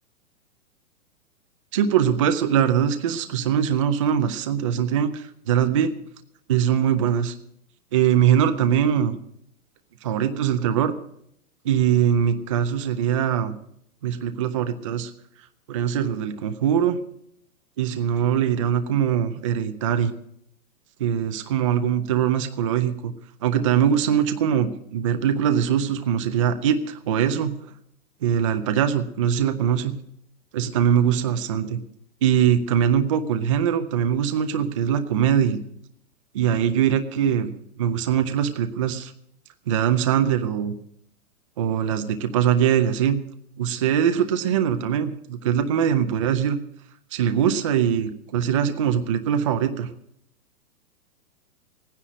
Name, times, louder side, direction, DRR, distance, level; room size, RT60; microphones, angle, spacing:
voice 1, 1.7-5.9 6.5-7.3 7.9-9.2 10.0-10.9 11.6-13.6 14.0-15.1 15.7-17.0 17.8-20.1 21.0-23.1 23.4-27.5 28.2-30.0 30.5-31.8 32.2-35.6 36.3-39.1 39.7-40.7 41.6-43.2 43.6-46.6 47.1-49.9, right 9 dB, 25° right, 9 dB, 0.4 m, -22 dB
16.5 x 10.0 x 6.1 m, 0.72 s
hypercardioid pair, 155°, 45 cm